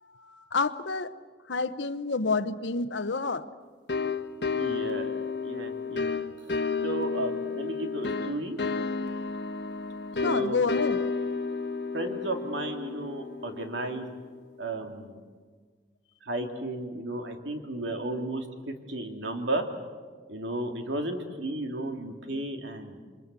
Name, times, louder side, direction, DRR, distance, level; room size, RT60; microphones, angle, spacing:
voice 1, 0.0-1.1 1.5-3.5 10.2-11.1, left 4 dB, 80° left, 9 dB, 0.9 m, -29 dB
sound 1, 3.9-14.4, left 4 dB, 65° left, 1.5 m, -32 dB
voice 2, 4.6-5.1 5.4-6.1 6.4-6.6 6.8-8.6 10.2-10.6 11.9-14.1 14.6-15.2 16.2-19.6 20.3-23.0, right 2 dB, 85° right, 4 dB, 2.7 m, -33 dB
28.0 x 24.5 x 8.3 m, 1.5 s
head